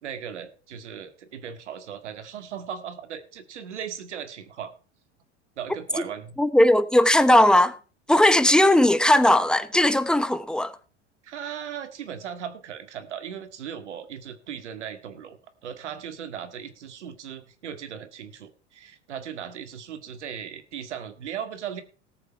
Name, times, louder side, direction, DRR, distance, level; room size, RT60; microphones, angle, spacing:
voice 1, 0.0-4.7 5.6-6.4 11.2-21.8, right 8 dB, 85° right, 2.0 m, -37 dB
voice 2, 6.4-7.8 8.1-10.7, left 1 dB, ahead, 1.1 m, -18 dB
18.5 x 7.1 x 4.6 m
hypercardioid pair, 90°, 34 cm